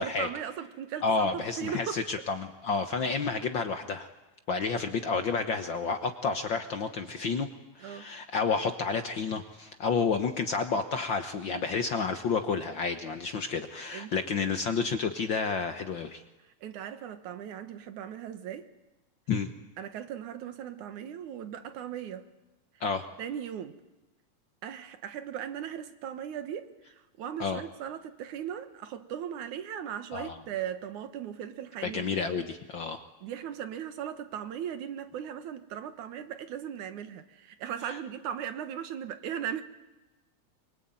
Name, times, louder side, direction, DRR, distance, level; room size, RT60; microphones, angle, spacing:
voice 1, 0.0-2.0 7.8-8.1 13.9-14.2 16.6-18.7 19.8-22.3 23.2-23.8 24.6-32.3 33.2-39.6, right 9 dB, 80° right, 2.9 m, -38 dB
voice 2, 1.0-4.1 4.5-7.5 7.8-16.2 19.3-19.5 22.8-23.1 27.4-27.6 30.1-30.4 31.8-33.0 37.9-38.0, left 5 dB, 55° left, 1.4 m, -30 dB
24.0 x 24.0 x 9.0 m
omnidirectional pair, 3.4 m